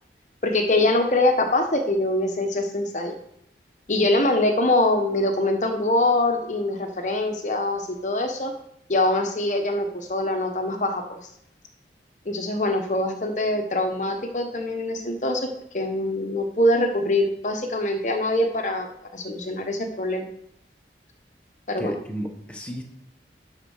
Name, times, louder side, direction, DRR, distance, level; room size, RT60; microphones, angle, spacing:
voice 1, 0.4-3.2 3.9-8.5 8.9-11.2 12.3-15.5 15.7-18.9 19.1-20.3 21.7-21.9, left 1 dB, 45° left, 5 dB, 0.9 m, -23 dB
voice 2, 21.8-22.8, equal, 5° left, 2 dB, 1.1 m, -32 dB
10.5 x 4.4 x 6.4 m, 0.73 s
head